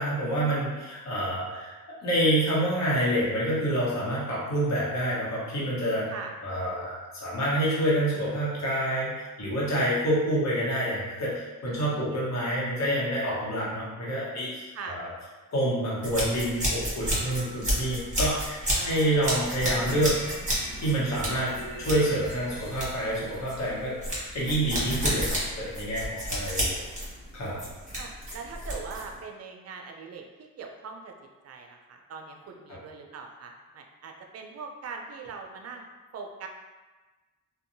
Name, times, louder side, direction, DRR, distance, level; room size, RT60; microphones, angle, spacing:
voice 1, 0.0-6.1 6.4-9.1 9.4-15.1 15.5-20.2 20.8-24.0 24.3-26.8 27.3-27.6, right 1 dB, 50° left, -6 dB, 1.0 m, -27 dB
voice 2, 11.7-12.1 14.7-15.0 18.7-19.4 28.0-31.1 31.4-35.9 36.1-36.5, right 5 dB, 45° right, 3 dB, 0.4 m, -42 dB
sound 1, 16.0-29.2, equal, 20° right, 1.3 m, -31 dB
sound 2, 17.0-24.1, equal, 75° left, 0.7 m, -44 dB
2.6 x 2.2 x 2.6 m, 1.3 s
cardioid pair, 65°, 35 cm